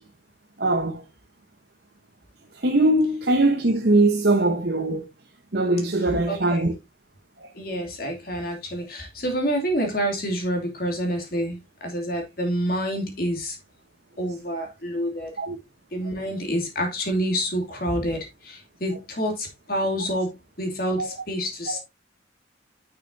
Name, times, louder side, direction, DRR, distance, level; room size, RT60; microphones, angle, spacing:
voice 1, 0.6-1.0 2.6-5.1 5.5-6.7 15.4-15.6 21.0-21.1 21.7-21.8, right 2 dB, 55° right, 1.1 m, -21 dB
voice 2, 6.3-6.7 7.5-13.6 14.2-15.3 15.9-21.8, equal, 50° left, 2.8 m, -28 dB
10.0 x 6.6 x 2.7 m
head